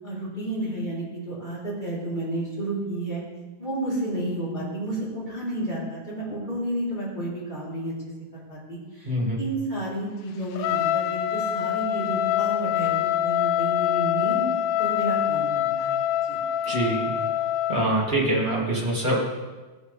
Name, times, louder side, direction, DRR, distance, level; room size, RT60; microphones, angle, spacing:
voice 1, 0.0-3.2 3.6-7.9 8.3-14.4 14.8-15.9 16.3-16.4, right 1 dB, 15° left, -9 dB, 2.8 m, -31 dB
voice 2, 9.0-9.4 16.6-17.2 17.7-19.2, right 1 dB, 30° right, -6 dB, 0.9 m, -24 dB
Trumpet, 10.6-17.9, left 11 dB, 85° left, 2.6 m, -25 dB
16.5 x 7.7 x 3.3 m, 1.3 s
omnidirectional pair, 4.7 m